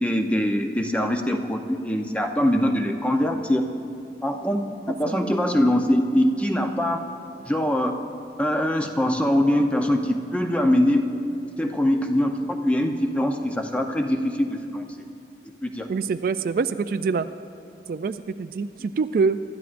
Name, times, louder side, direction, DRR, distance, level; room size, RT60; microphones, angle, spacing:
voice 1, 0.0-3.6 4.2-4.6 4.9-7.0 7.5-8.0 8.4-11.1 11.6-15.0 15.6-15.9, left 1 dB, 5° left, 4 dB, 0.7 m, -23 dB
voice 2, 15.9-17.3 17.9-19.4, right 5 dB, 50° right, 11 dB, 0.3 m, -25 dB
24.5 x 12.5 x 2.6 m, 2.6 s
head